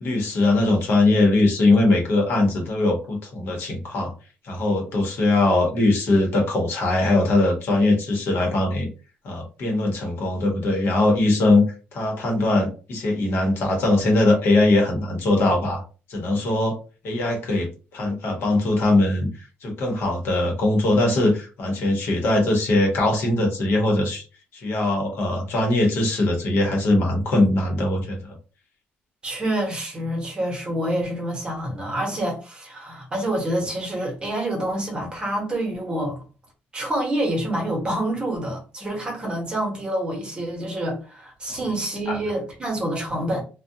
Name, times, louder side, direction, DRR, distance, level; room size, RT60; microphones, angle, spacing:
voice 1, 0.0-4.1 4.4-8.9 9.2-11.6 11.9-15.8 16.1-16.8 17.0-19.3 19.6-24.2 24.5-28.4 42.1-42.2, left 2 dB, 65° left, 0.9 m, -21 dB
voice 2, 29.2-36.2 36.7-43.4, right 1 dB, 25° right, 1.0 m, -27 dB
2.4 x 2.2 x 2.7 m
cardioid pair, 135°, 4 cm